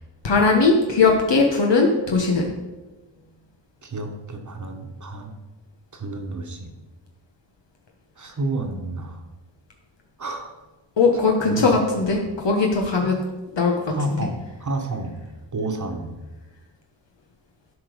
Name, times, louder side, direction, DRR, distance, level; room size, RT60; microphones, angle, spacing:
voice 1, 0.2-2.5 11.0-13.2 13.6-13.7, left 4 dB, 65° left, 0 dB, 1.3 m, -19 dB
voice 2, 3.8-5.3 5.9-6.7 8.2-9.2 10.2-10.5 11.1-11.2 11.5-11.7 13.0-13.1 13.9-15.2 15.5-16.2, right 2 dB, 40° right, 4 dB, 1.4 m, -30 dB
13.0 x 5.2 x 5.2 m, 1.1 s
wide cardioid pair, 105°, 47 cm